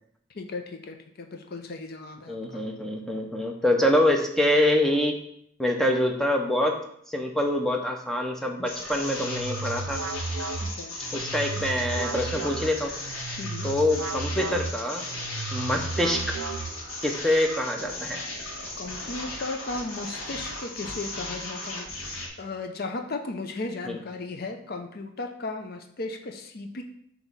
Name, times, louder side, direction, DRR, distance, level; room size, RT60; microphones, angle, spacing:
voice 1, 0.3-2.6 10.6-10.9 13.4-13.7 18.8-26.8, left 3 dB, 45° left, 5 dB, 0.6 m, -36 dB
voice 2, 2.3-5.2 5.6-6.8 7.1-10.0 11.1-12.9 13.6-15.0 15.5-16.3 17.0-18.2 23.9-24.0, left 1 dB, ahead, 2 dB, 0.6 m, -25 dB
sound 1, 8.7-22.3, left 2 dB, 90° left, 1.6 m, -36 dB
sound 2, 9.0-17.1, right 3 dB, 85° right, 0.5 m, -34 dB
6.0 x 3.0 x 5.3 m, 0.69 s
head